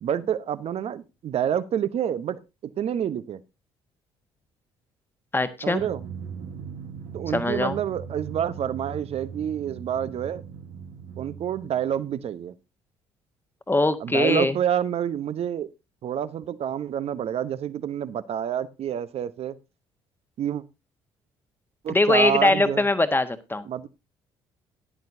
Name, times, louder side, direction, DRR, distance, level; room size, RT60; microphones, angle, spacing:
voice 1, 0.0-3.4 5.6-6.0 7.1-10.4 11.2-12.5 14.0-15.7 16.0-19.6 20.4-20.6 21.8-22.8 23.6-23.9, right 9 dB, 50° right, 15 dB, 0.9 m, -28 dB
voice 2, 5.3-5.8 7.3-7.8 13.7-14.6 21.9-23.6, left 2 dB, 15° left, 10 dB, 1.4 m, -22 dB
Drum, 5.8-12.3, right 6 dB, 65° right, 1.4 m, -39 dB
14.0 x 10.5 x 2.7 m, 0.26 s
figure-of-eight pair, 50°, 13 cm